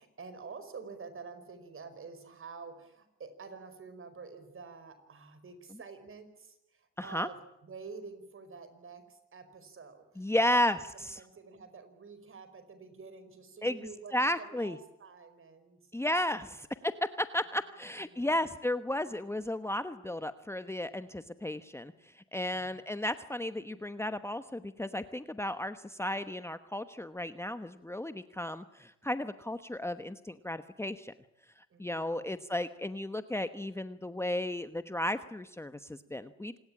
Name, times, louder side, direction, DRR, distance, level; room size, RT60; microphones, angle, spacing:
voice 1, 0.0-15.9 18.1-18.5 22.5-22.8 31.7-32.4, right 4 dB, 45° right, 11 dB, 5.1 m, -49 dB
voice 2, 7.0-7.3 10.2-11.2 13.6-13.8 14.1-14.8 15.9-31.1 31.6-36.6, left 1 dB, 10° left, 11 dB, 1.1 m, -34 dB
27.0 x 20.0 x 8.8 m, 0.86 s
cardioid pair, 90°, 30 cm